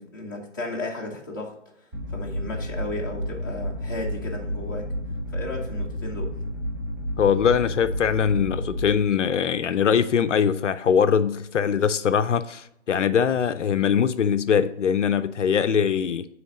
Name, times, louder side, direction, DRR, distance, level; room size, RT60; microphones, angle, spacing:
voice 1, 0.0-1.5 2.1-4.9 5.3-6.3, left 2 dB, 15° left, 0.6 m, -34 dB
sound 1, 1.9-8.8, equal, 20° right, 1.4 m, -31 dB
voice 2, 7.2-16.3, left 7 dB, 75° left, 0.5 m, -22 dB
7.7 x 3.2 x 5.0 m
figure-of-eight pair, 155°, 37 cm